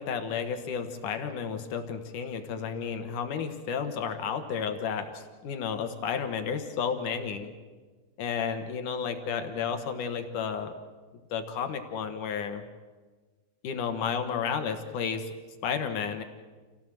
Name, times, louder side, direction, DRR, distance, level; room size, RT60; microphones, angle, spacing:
voice 1, 0.0-7.5 8.2-10.7 11.3-12.6 13.6-15.3 15.6-16.2, left 6 dB, 65° left, 7 dB, 2.8 m, -32 dB
28.0 x 17.0 x 7.8 m, 1.4 s
omnidirectional pair, 4.2 m